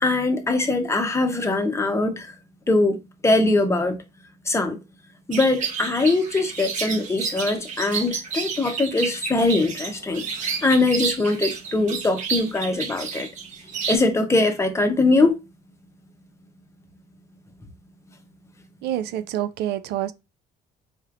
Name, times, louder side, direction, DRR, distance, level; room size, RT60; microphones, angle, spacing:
voice 1, 0.0-2.3 2.7-3.0 3.2-3.9 4.5-4.8 5.3-10.2 10.6-13.3 13.9-15.4, left 2 dB, 15° left, 0.8 m, -21 dB
sound 1, 5.3-14.0, right 5 dB, 45° right, 1.1 m, -30 dB
voice 2, 18.8-20.1, right 12 dB, 75° right, 0.4 m, -27 dB
4.2 x 3.1 x 2.5 m
cardioid pair, 110°, 17 cm